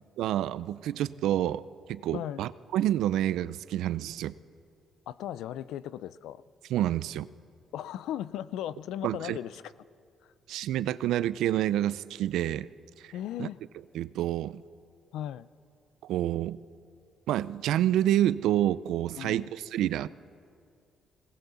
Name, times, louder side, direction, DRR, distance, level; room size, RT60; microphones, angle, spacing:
voice 1, 0.2-1.6 1.9-4.3 6.7-7.3 9.0-9.4 10.5-12.7 13.0-13.1 13.4-13.5 13.9-14.6 16.0-16.6 17.3-20.1, right 12 dB, 85° right, 17 dB, 0.5 m, -28 dB
voice 2, 2.1-2.4 5.1-6.4 7.7-9.6 13.1-13.6 15.1-15.5 19.2-19.5, left 11 dB, 85° left, 17 dB, 0.5 m, -37 dB
21.5 x 18.0 x 7.0 m, 2.3 s
cardioid pair, 90°, 0 cm